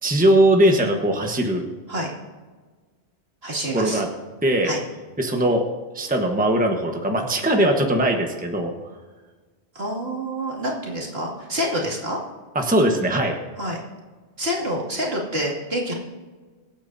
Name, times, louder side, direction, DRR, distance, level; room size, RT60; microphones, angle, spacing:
voice 1, 0.0-1.7 3.7-4.1 4.4-4.7 5.2-5.6 5.9-8.7 12.5-13.4, right 1 dB, 10° right, 3 dB, 1.2 m, -20 dB
voice 2, 3.4-4.0 4.6-4.8 9.7-12.2 13.6-13.8 14.4-15.9, equal, 65° right, -2 dB, 2.8 m, -27 dB
24.5 x 9.0 x 2.7 m, 1.4 s
omnidirectional pair, 1.1 m